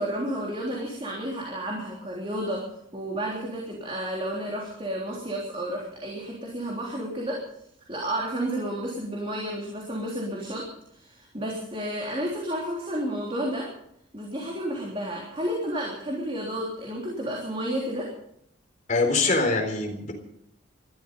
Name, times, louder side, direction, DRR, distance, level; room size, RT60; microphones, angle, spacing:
voice 1, 0.0-2.6 2.9-7.4 7.9-13.7 14.1-18.1, right 1 dB, 30° right, -2 dB, 3.4 m, -31 dB
voice 2, 18.9-20.1, left 3 dB, 40° left, 2 dB, 4.0 m, -23 dB
20.0 x 13.5 x 5.3 m, 0.73 s
head